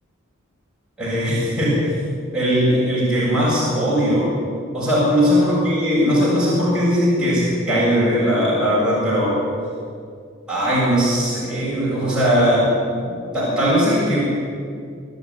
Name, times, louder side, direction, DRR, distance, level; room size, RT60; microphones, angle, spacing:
voice 1, 1.0-1.9 2.3-4.3 4.7-9.4 10.5-12.6 13.0-14.2, equal, 5° right, -9 dB, 7.6 m, -19 dB
25.5 x 11.0 x 9.6 m, 2.2 s
head